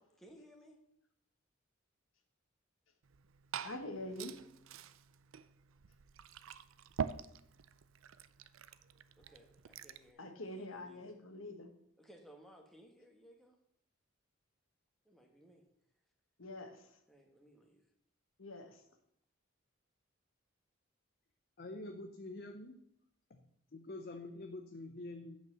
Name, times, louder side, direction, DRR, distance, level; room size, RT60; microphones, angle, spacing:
voice 1, 0.2-0.8 9.2-11.1 12.0-13.6 15.0-15.6 17.1-17.8, equal, ahead, 1 dB, 1.4 m, -60 dB
Liquid, 3.0-10.1, right 7 dB, 90° right, 0.5 m, -46 dB
voice 2, 3.6-4.4 10.2-11.7 16.4-17.0 18.4-18.8, left 1 dB, 85° left, 5 dB, 1.5 m, -45 dB
voice 3, 21.6-22.8 23.3-23.4 23.7-25.4, left 2 dB, 50° left, 5 dB, 0.8 m, -46 dB
9.0 x 5.2 x 7.4 m, 0.72 s
head